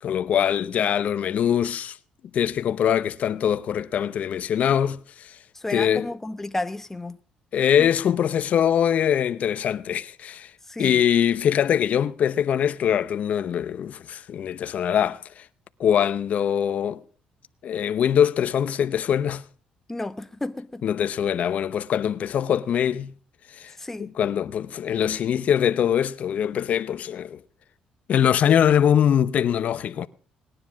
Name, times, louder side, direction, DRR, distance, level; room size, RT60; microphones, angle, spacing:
voice 1, 0.0-2.0 2.3-5.4 5.7-6.1 7.5-10.5 10.8-15.4 15.8-17.0 17.6-19.4 20.8-23.1 23.5-23.7 24.0-27.4 28.1-30.1, left 9 dB, 60° left, 0.7 m, -23 dB
voice 2, 5.5-7.2 7.8-7.9 10.7-11.0 19.9-20.8 23.8-24.1, left 2 dB, 15° left, 0.9 m, -32 dB
19.5 x 10.0 x 6.2 m
cardioid pair, 95°, 3 cm